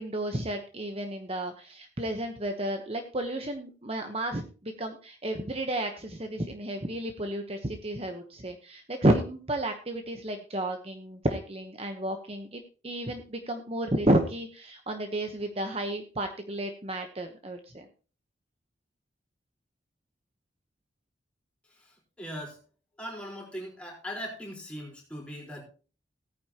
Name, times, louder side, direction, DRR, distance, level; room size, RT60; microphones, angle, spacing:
voice 1, 0.0-17.9, right 1 dB, 30° right, 5 dB, 1.0 m, -31 dB
voice 2, 21.7-22.6 23.0-25.6, equal, 5° left, -2 dB, 4.3 m, -40 dB
16.5 x 9.6 x 2.9 m, 0.36 s
head